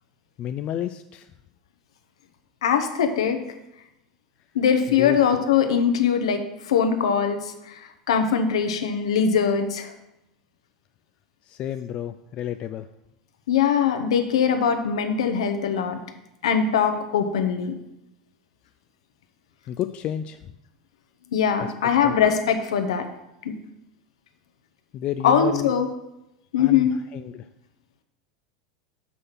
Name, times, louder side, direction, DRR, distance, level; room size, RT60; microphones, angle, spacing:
voice 1, 0.4-1.3 5.0-5.2 11.5-12.9 19.7-20.4 22.0-22.1 24.9-25.7 26.6-27.5, left 11 dB, 40° left, 10 dB, 0.3 m, -31 dB
voice 2, 2.6-3.4 4.5-7.8 8.1-9.9 13.5-16.0 16.4-17.7 21.3-23.0 23.4-23.6 25.2-25.9 26.5-26.9, left 7 dB, 70° left, 6 dB, 0.9 m, -22 dB
6.5 x 5.6 x 5.7 m, 0.89 s
hypercardioid pair, 85°, 3 cm